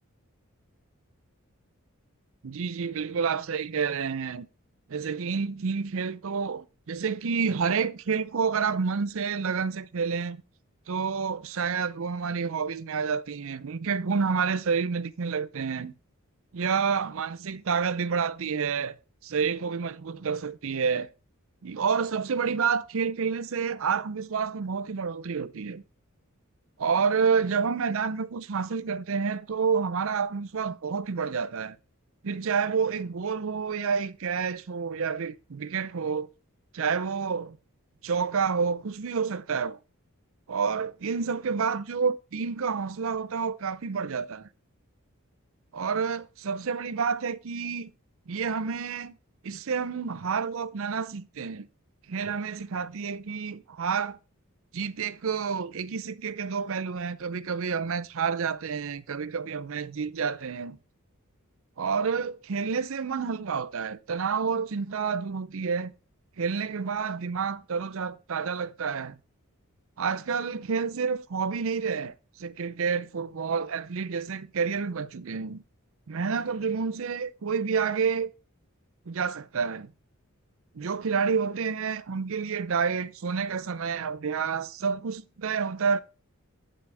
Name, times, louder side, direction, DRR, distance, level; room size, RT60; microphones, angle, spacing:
voice 1, 2.4-4.5 4.9-10.4 10.9-15.9 16.5-19.0 19.2-21.1 21.6-25.8 26.8-31.8 32.2-36.3 36.7-37.6 38.0-39.8 40.5-44.5 45.7-47.9 48.3-49.1 49.4-51.7 52.1-54.2 54.7-60.8 61.8-65.9 66.4-69.2 70.0-75.6 76.1-78.3 79.1-79.9 80.7-86.0, right 5 dB, 65° right, 0.6 m, -29 dB
11.0 x 6.2 x 3.4 m
head